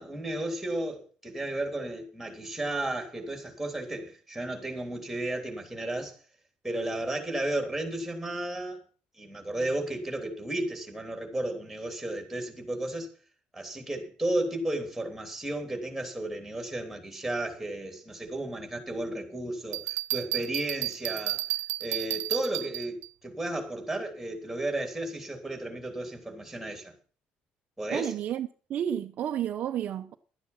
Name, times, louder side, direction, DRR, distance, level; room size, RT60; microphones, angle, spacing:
voice 1, 0.0-6.2 6.6-8.8 9.2-13.1 13.5-21.4 21.8-26.9 27.8-28.1, right 1 dB, ahead, 3.4 m, -33 dB
Bell, 19.7-23.1, right 18 dB, 75° right, 0.8 m, -32 dB
voice 2, 27.9-30.1, right 10 dB, 45° right, 0.8 m, -31 dB
12.5 x 9.5 x 5.8 m
cardioid pair, 165°, 4 cm